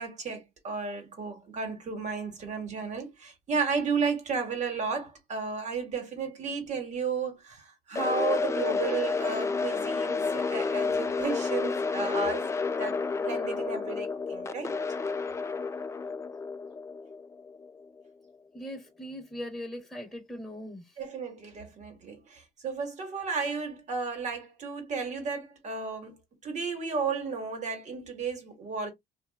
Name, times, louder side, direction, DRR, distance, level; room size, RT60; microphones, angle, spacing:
voice 1, 0.0-12.5 12.8-14.8 21.0-26.2 26.4-28.9, right 5 dB, 45° right, 1.4 m, -33 dB
sound 1, 7.9-18.0, left 4 dB, 15° left, 0.3 m, -30 dB
voice 2, 18.5-21.0, equal, ahead, 1.1 m, -40 dB
2.9 x 2.5 x 2.3 m
cardioid pair, 110°, 17 cm